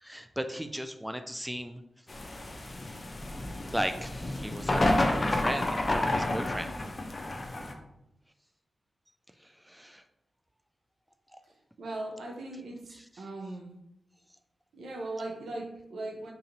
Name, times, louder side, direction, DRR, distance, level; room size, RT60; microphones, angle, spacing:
voice 1, 0.0-1.8 3.7-4.8 5.2-6.7 9.4-10.0, equal, 5° right, 8 dB, 0.3 m, -36 dB
sound 1, 2.1-7.7, left 1 dB, 40° left, 0.6 m, -30 dB
voice 2, 11.8-13.7 14.7-16.3, right 2 dB, 80° right, 0 dB, 0.6 m, -39 dB
3.9 x 2.7 x 2.6 m, 0.84 s
supercardioid pair, 40°, 0 cm